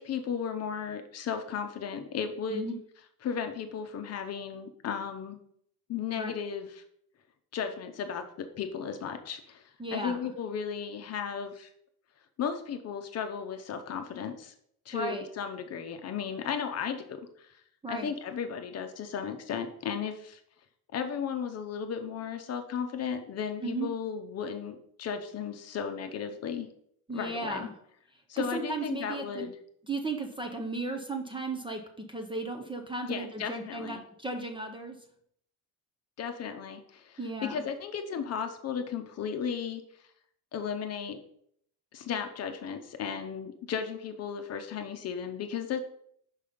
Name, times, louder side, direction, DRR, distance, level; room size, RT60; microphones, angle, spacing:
voice 1, 0.0-2.7 3.2-5.4 5.9-6.8 7.5-9.6 9.9-11.7 12.4-14.5 14.9-17.6 17.9-20.4 20.9-26.7 27.1-27.7 28.3-29.5 33.1-34.0 36.2-39.8 40.5-41.2 41.9-45.8, left 7 dB, 40° left, 7 dB, 0.8 m, -35 dB
voice 2, 9.8-10.2 14.9-15.3 17.8-18.1 23.6-23.9 27.1-27.7 28.4-29.5 29.8-31.8 32.1-35.0 37.2-37.7, right 2 dB, 15° right, 4 dB, 0.6 m, -35 dB
5.5 x 5.5 x 5.0 m, 0.68 s
cardioid pair, 160°, 38 cm